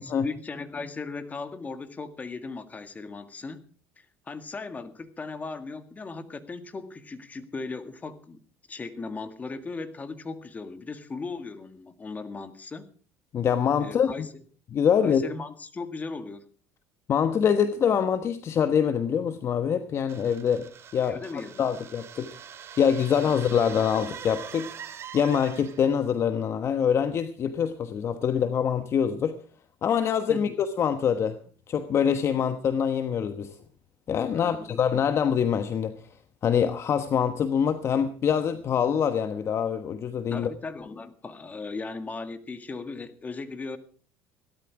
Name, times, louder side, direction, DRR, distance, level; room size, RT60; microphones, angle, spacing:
voice 1, 0.0-3.6 4.0-8.4 8.7-12.9 13.8-14.4 15.0-16.5 21.0-21.6 23.3-23.4 30.3-30.6 34.3-34.8 40.3-43.8, left 4 dB, 25° left, 2.0 m, -37 dB
voice 2, 13.3-14.1 14.7-15.2 17.1-20.7 20.9-22.3 22.8-24.7 25.1-29.4 29.8-31.4 31.7-33.5 34.1-36.0 36.4-40.5, left 7 dB, 45° left, 1.1 m, -25 dB
sound 1, 20.1-26.0, right 8 dB, 45° right, 2.5 m, -43 dB
17.0 x 12.5 x 4.8 m
supercardioid pair, 100°, 6 cm